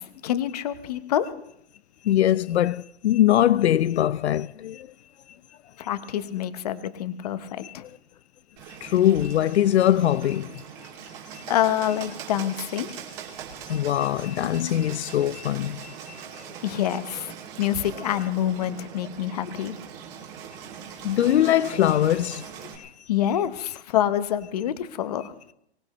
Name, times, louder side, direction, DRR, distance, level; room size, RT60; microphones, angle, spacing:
voice 1, 0.0-1.3 5.8-7.8 11.5-12.9 16.6-17.3 17.6-19.7 23.1-25.3, left 11 dB, 35° left, 1.0 m, -26 dB
voice 2, 2.0-4.9 5.3-5.4 7.6-8.0 8.7-10.9 11.3-11.4 13.7-16.4 21.0-22.5 22.8-23.1, left 12 dB, 85° left, 0.6 m, -23 dB
Bird, 8.6-22.8, right 8 dB, 25° right, 2.5 m, -41 dB
24.0 x 19.0 x 3.1 m
hypercardioid pair, 170°, 32 cm